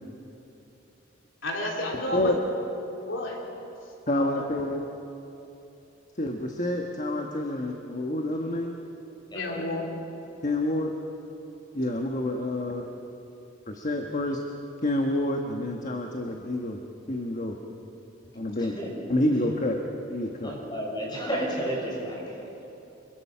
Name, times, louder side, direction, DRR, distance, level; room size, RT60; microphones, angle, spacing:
voice 1, 1.4-2.4 3.1-3.4 4.1-4.5 9.3-9.9, left 1 dB, 75° left, 0 dB, 3.0 m, -31 dB
voice 2, 4.1-4.8 6.2-8.8 10.4-10.9 11.7-12.9 13.7-14.4 14.8-16.8 17.1-17.6 18.3-18.8 19.1-19.8 20.1-20.5, left 1 dB, 40° left, 2 dB, 1.3 m, -28 dB
voice 3, 9.3-9.6 18.6-18.9 20.4-22.4, equal, 25° left, -2 dB, 5.8 m, -32 dB
26.0 x 22.5 x 5.8 m, 3.0 s
head